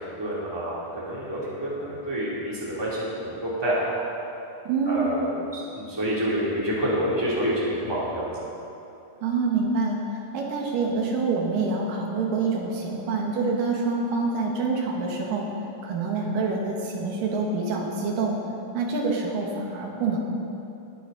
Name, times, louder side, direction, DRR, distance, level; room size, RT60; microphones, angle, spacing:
voice 1, 0.2-4.1 4.9-8.3, right 1 dB, 10° right, -7 dB, 2.5 m, -28 dB
voice 2, 4.6-5.1 9.2-15.5 15.8-18.4 18.7-20.2, right 4 dB, 90° right, -1 dB, 3.2 m, -26 dB
19.0 x 9.2 x 4.0 m, 2.7 s
omnidirectional pair, 3.8 m